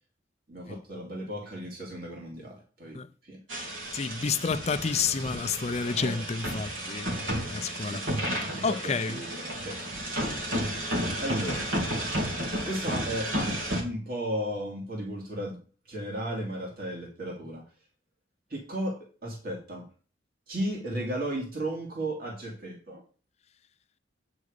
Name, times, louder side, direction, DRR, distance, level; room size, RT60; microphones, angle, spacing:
voice 1, 0.5-3.4 6.0-6.2 7.8-8.1 8.5-9.8 11.2-11.7 12.6-13.3 13.7-15.6 15.9-17.6 18.5-19.9 20.5-23.0, right 1 dB, 50° right, 2.5 m, -35 dB
sound 1, 3.5-13.8, equal, 90° right, 2.8 m, -32 dB
voice 2, 3.9-8.0 8.6-9.2, left 5 dB, 35° left, 0.5 m, -30 dB
9.7 x 4.9 x 6.6 m
head